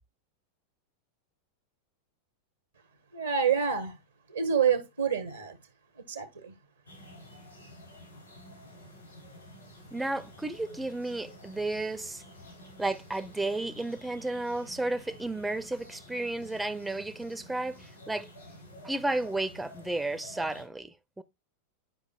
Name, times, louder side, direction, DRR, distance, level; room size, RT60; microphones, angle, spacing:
voice 1, 3.1-3.9 4.3-5.6 6.1-6.5, right 7 dB, 75° right, 0.8 m, -27 dB
sound 1, 6.9-20.6, left 1 dB, 85° left, 4.0 m, -50 dB
voice 2, 9.9-12.2 12.8-18.3 18.8-21.2, right 2 dB, 5° right, 0.4 m, -33 dB
10.0 x 4.9 x 2.2 m
figure-of-eight pair, 90°, 0 cm